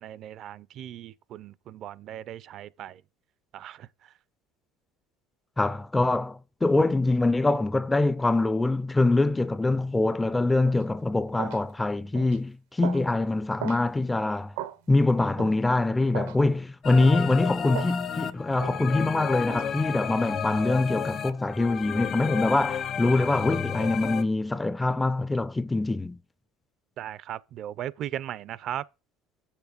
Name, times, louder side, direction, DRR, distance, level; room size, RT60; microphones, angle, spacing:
voice 1, 0.0-3.0 3.5-3.9 27.0-28.8, right 11 dB, 50° right, 0.4 m, -37 dB
voice 2, 5.6-14.5 14.9-26.2, left 2 dB, 10° left, 0.4 m, -24 dB
sound 1, 10.7-10.8 11.4-11.6 12.2-12.4 12.8-13.1 13.6-13.8 14.6-14.8 15.4-15.6 16.1-16.4 17.0-17.2 17.7-18.0 18.6-18.8 19.5-19.7, right 11 dB, 90° right, 0.9 m, -36 dB
sound 2, 16.8-24.2, left 8 dB, 45° left, 0.8 m, -32 dB
7.5 x 7.2 x 5.0 m
supercardioid pair, 115°, 0 cm